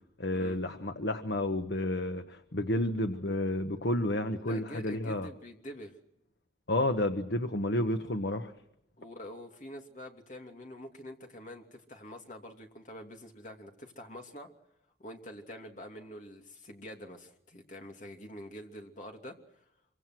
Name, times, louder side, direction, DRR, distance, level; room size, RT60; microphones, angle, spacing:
voice 1, 0.2-5.3 6.7-8.5, left 1 dB, 75° left, 7 dB, 1.3 m, -31 dB
voice 2, 4.4-5.9 9.0-14.5 15.0-19.6, equal, 45° left, 2 dB, 2.9 m, -46 dB
26.0 x 25.0 x 6.2 m, 0.81 s
head